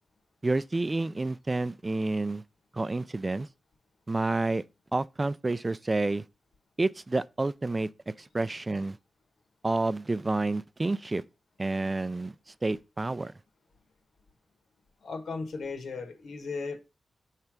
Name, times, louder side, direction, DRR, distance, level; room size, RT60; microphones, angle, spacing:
voice 1, 0.4-2.4 2.7-3.5 4.1-4.6 4.9-6.2 6.8-7.9 8.2-9.0 9.6-11.2 11.6-12.3 12.6-13.3, right 2 dB, 20° right, 0.3 m, -29 dB
voice 2, 15.0-16.8, left 4 dB, 80° left, 1.3 m, -36 dB
6.8 x 3.3 x 6.0 m
wide cardioid pair, 150°, 0 cm